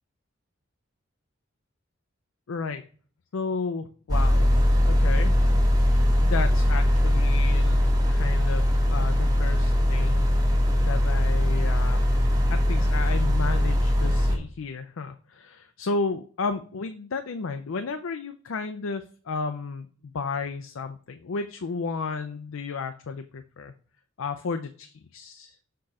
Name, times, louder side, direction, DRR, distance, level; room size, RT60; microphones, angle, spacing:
voice 1, 2.5-2.8 3.3-4.5 4.8-5.4 6.3-10.3 10.8-12.1 12.5-23.7 24.2-25.6, left 4 dB, 85° left, 8 dB, 0.5 m, -33 dB
sound 1, 4.1-14.4, equal, 20° right, 1.2 m, -21 dB
6.8 x 3.8 x 4.1 m, 0.43 s
head